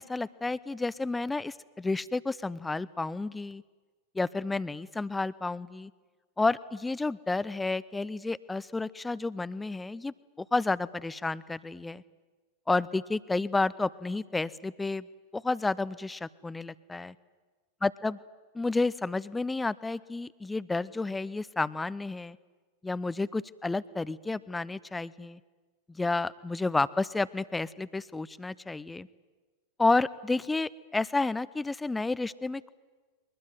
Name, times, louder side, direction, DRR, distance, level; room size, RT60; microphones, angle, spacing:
voice 1, 0.0-3.6 4.1-5.9 6.4-12.0 12.7-15.1 15.3-17.1 17.8-18.2 18.5-22.4 22.8-25.4 25.9-29.1 29.8-32.7, left 3 dB, 10° left, 19 dB, 0.7 m, -31 dB
22.5 x 20.5 x 9.5 m, 1.3 s
figure-of-eight pair, 90°, 0 cm